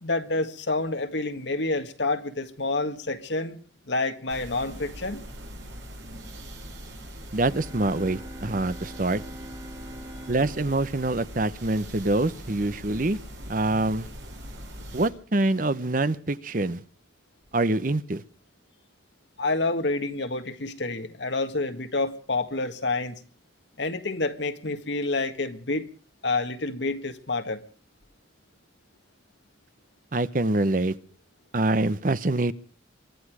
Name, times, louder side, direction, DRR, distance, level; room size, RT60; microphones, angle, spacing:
voice 1, 0.0-3.6 3.9-5.2 19.4-23.1 23.8-25.9 26.2-27.6, left 2 dB, 70° left, 1.8 m, -28 dB
sound 1, 4.3-15.1, equal, 75° right, 5.4 m, -42 dB
voice 2, 7.3-9.2 10.3-13.2 13.5-14.1 14.9-16.8 17.5-18.2 30.1-31.0 31.5-32.5, right 2 dB, 45° right, 0.8 m, -25 dB
sound 2, 7.5-12.1, right 1 dB, 20° right, 2.5 m, -44 dB
23.5 x 12.5 x 4.9 m
head